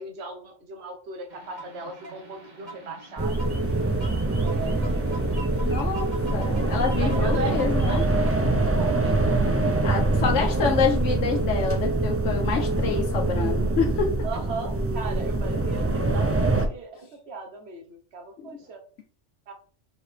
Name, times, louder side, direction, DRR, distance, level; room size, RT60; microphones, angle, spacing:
voice 1, 0.0-3.9 4.4-5.3 7.0-7.6 8.6-9.9 14.2-18.8 19.5-19.6, right 3 dB, 60° right, 4 dB, 1.4 m, -38 dB
sound 1, 1.3-8.4, right 2 dB, 40° right, 1.4 m, -43 dB
sound 2, 3.2-16.7, right 2 dB, 20° right, 0.4 m, -24 dB
voice 2, 5.6-8.0 9.8-14.1, left 5 dB, 80° left, 1 dB, 1.3 m, -27 dB
4.7 x 4.6 x 5.1 m, 0.43 s
omnidirectional pair, 1.2 m